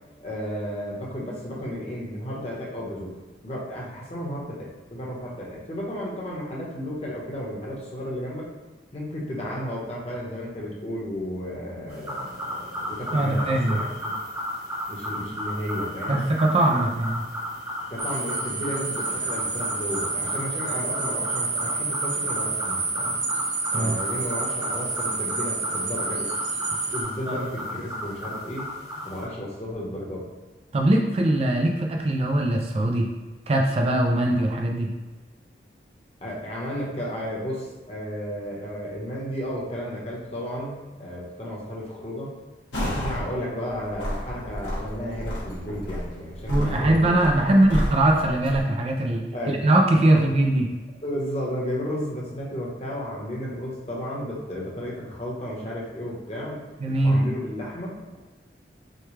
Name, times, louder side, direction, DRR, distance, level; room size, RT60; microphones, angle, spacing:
voice 1, 0.2-3.2 3.4-8.5 8.9-14.1 14.9-16.2 16.7-16.8 17.9-23.1 23.7-26.3 26.9-28.7 29.0-30.3 36.2-40.7 41.0-42.3 42.8-47.1 47.4-47.8 49.1-49.6 50.1-50.3 51.0-58.2, equal, 35° left, -4 dB, 1.0 m, -33 dB
sound 1, 11.9-29.2, left 1 dB, 15° right, 0.9 m, -34 dB
voice 2, 13.1-13.8 16.1-17.2 23.7-24.0 27.3-27.4 30.7-33.1 33.5-34.9 46.5-49.2 49.6-50.7 56.8-57.2, right 1 dB, 35° right, 1 dB, 0.3 m, -21 dB
sound 2, 18.0-27.0, right 4 dB, 85° right, 1.3 m, -29 dB
sound 3, 42.7-43.3 43.7-48.6, equal, 80° left, 1.2 m, -31 dB
6.4 x 2.3 x 3.2 m, 1.3 s
head